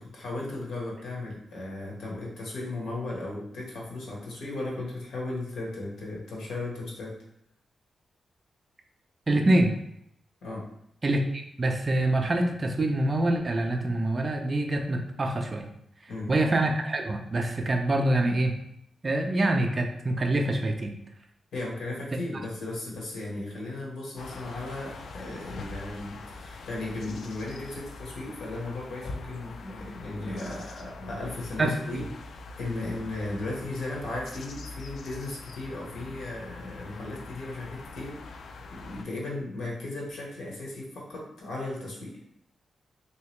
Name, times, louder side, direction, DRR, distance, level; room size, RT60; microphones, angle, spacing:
voice 1, 0.0-7.1 10.4-10.7 16.1-16.3 21.5-32.0 32.6-42.2, left 2 dB, 80° left, -3 dB, 1.1 m, -36 dB
voice 2, 9.3-9.7 11.0-15.7 16.0-18.6 19.0-20.9 31.6-31.7, right 1 dB, 30° right, 3 dB, 0.4 m, -25 dB
sound 1, 24.2-39.0, left 3 dB, 65° left, 0.3 m, -43 dB
3.3 x 2.8 x 3.0 m, 0.74 s
wide cardioid pair, 160°, 0 cm